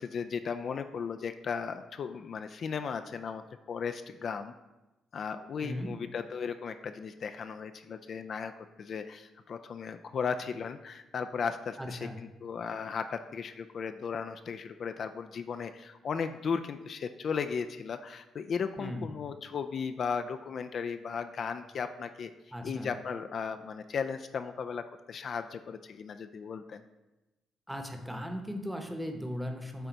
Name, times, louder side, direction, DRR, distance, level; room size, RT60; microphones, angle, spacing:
voice 1, 0.0-4.5 5.1-22.3 22.6-26.8, left 6 dB, 55° left, 8 dB, 0.3 m, -36 dB
voice 2, 5.6-6.0 11.8-12.2 18.8-19.1 22.5-22.9 27.7-29.9, equal, 5° right, 4 dB, 0.9 m, -37 dB
7.8 x 3.9 x 4.6 m, 1.0 s
cardioid pair, 90°, 0 cm